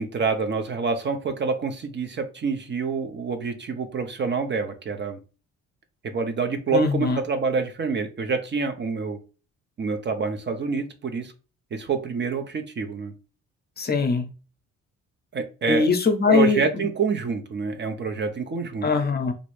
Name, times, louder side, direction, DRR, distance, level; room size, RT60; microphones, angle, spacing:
voice 1, 0.0-5.2 6.0-9.2 9.8-11.3 11.7-13.1 15.3-15.9 16.3-18.9, right 5 dB, 35° right, 0.6 m, -27 dB
voice 2, 6.7-7.2 13.8-14.3 15.7-16.8 18.8-19.3, left 4 dB, 30° left, 0.6 m, -22 dB
3.0 x 2.6 x 3.1 m
cardioid pair, 90°, 30 cm